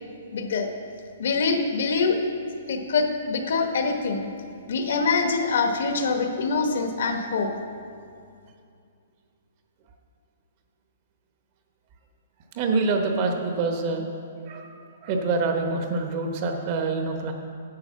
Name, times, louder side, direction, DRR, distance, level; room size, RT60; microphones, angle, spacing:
voice 1, 0.3-0.7 1.2-2.2 2.7-4.2 4.7-7.5, left 4 dB, 60° left, 5 dB, 1.1 m, -24 dB
voice 2, 12.5-14.1 14.4-14.7 15.0-17.3, right 3 dB, 30° right, 4 dB, 0.8 m, -26 dB
9.6 x 6.5 x 7.3 m, 2.4 s
hypercardioid pair, 175°, 0 cm